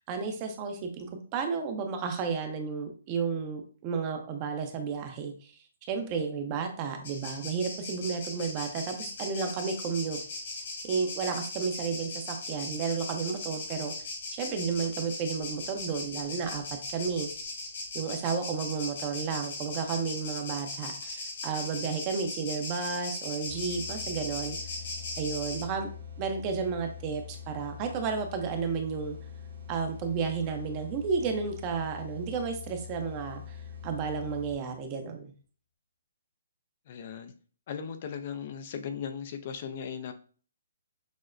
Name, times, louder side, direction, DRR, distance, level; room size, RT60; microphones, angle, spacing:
voice 1, 0.0-5.5 5.9-10.2 10.8-13.9 14.3-16.6 16.9-17.3 17.9-24.6 25.2-25.9 26.2-29.2 29.7-33.6 33.8-35.3, right 5 dB, 30° right, 5 dB, 0.6 m, -32 dB
sound 1, 7.0-25.6, left 2 dB, 60° left, 1.6 m, -39 dB
sound 2, 23.5-34.8, left 8 dB, 70° right, 1.6 m, -44 dB
voice 2, 36.9-37.3 37.7-40.1, left 7 dB, 45° left, 8 dB, 0.4 m, -37 dB
6.1 x 2.1 x 2.5 m, 0.41 s
hypercardioid pair, 150°, 0 cm